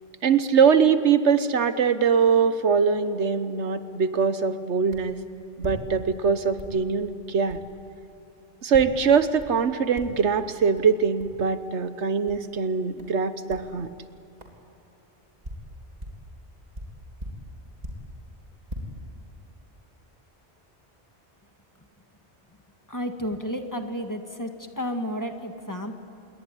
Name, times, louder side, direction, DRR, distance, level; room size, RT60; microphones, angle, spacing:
voice 1, 0.2-5.2 5.6-7.6 8.6-13.9, right 6 dB, 85° right, 11 dB, 1.4 m, -22 dB
sound 1, 4.9-5.1 5.5-6.3 6.6-6.8 7.5-7.7 8.7-9.0 9.4-9.6 9.9-10.3 10.8-10.9 11.2-11.4 12.3-12.4 13.0-13.2 13.5-13.7 14.4-14.6 15.2-16.3 16.7-18.1 18.5-18.8, equal, 35° right, 3.4 m, -39 dB
voice 2, 22.9-26.0, equal, 15° left, 5 dB, 1.8 m, -32 dB
27.0 x 22.0 x 9.9 m, 2.8 s
omnidirectional pair, 1.1 m